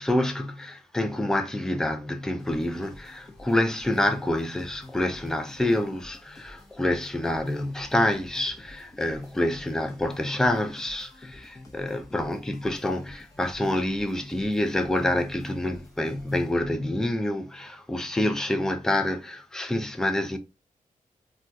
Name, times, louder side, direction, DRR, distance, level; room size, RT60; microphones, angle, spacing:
voice 1, 0.0-20.4, left 1 dB, 5° left, 0.4 m, -27 dB
sound 1, 2.4-17.0, left 1 dB, 25° left, 0.7 m, -49 dB
2.3 x 2.3 x 3.9 m
wide cardioid pair, 135°, 14 cm